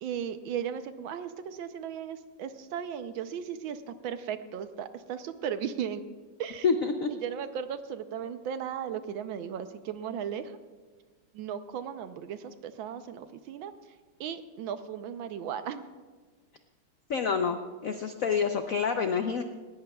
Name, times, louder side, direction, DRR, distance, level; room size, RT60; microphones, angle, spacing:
voice 1, 0.0-6.0 6.4-6.7 7.1-10.5 11.3-13.7 14.2-15.8, right 8 dB, 70° right, 10 dB, 1.4 m, -36 dB
voice 2, 6.6-7.1 17.1-19.4, left 5 dB, 90° left, 7 dB, 0.7 m, -27 dB
18.5 x 17.5 x 2.3 m, 1.4 s
omnidirectional pair, 2.3 m